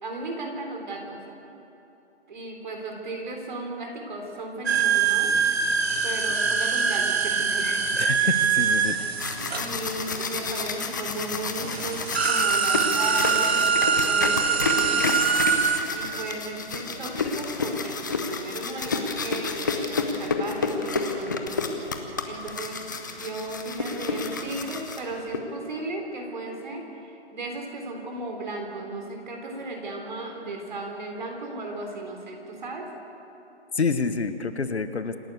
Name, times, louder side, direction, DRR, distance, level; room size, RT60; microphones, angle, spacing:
voice 1, 0.0-1.2 2.3-5.3 6.0-7.8 8.2-8.4 9.5-15.2 15.9-21.7 22.3-22.8 23.2-32.9, right 2 dB, 45° right, 2 dB, 3.7 m, -35 dB
sound 1, 4.7-10.4 11.2-11.3 11.6-15.8, right 6 dB, 65° right, 1.7 m, -23 dB
voice 2, 7.9-9.0 33.7-35.2, left 4 dB, 70° left, 10 dB, 1.3 m, -27 dB
sound 2, 8.9-25.4, left 4 dB, 15° left, 0.7 m, -30 dB
27.0 x 12.0 x 8.1 m, 2.9 s
figure-of-eight pair, 155°, 34 cm